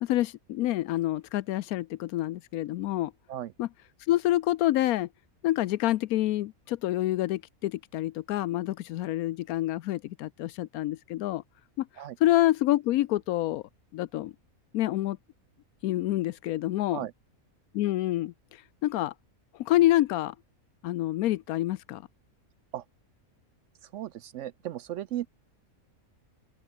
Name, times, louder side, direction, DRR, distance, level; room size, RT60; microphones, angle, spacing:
voice 1, 0.0-3.1 3.6-3.7 4.1-5.1 5.4-11.4 11.8-11.9 12.2-13.6 13.9-14.3 14.7-15.2 15.8-17.0 17.7-19.1 19.5-20.3 20.8-22.0, left 15 dB, 85° left, 1.1 m, -27 dB
voice 2, 23.8-25.3, right 12 dB, 70° right, 0.8 m, -36 dB
open air
omnidirectional pair, 1.5 m